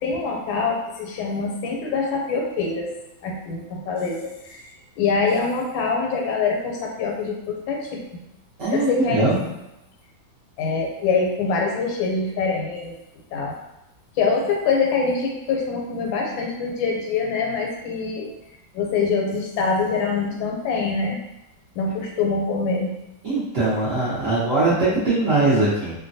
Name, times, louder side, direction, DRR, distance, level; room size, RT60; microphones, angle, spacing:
voice 1, 0.0-2.9 3.2-4.6 5.0-8.2 8.7-9.3 10.6-12.9 13.3-13.6 14.2-18.3 18.7-21.2 21.7-22.9, left 4 dB, 85° left, 0 dB, 1.3 m, -24 dB
voice 2, 8.6-9.4 23.2-25.9, right 2 dB, 55° right, -10 dB, 0.9 m, -21 dB
3.1 x 2.1 x 2.6 m, 0.90 s
omnidirectional pair, 2.1 m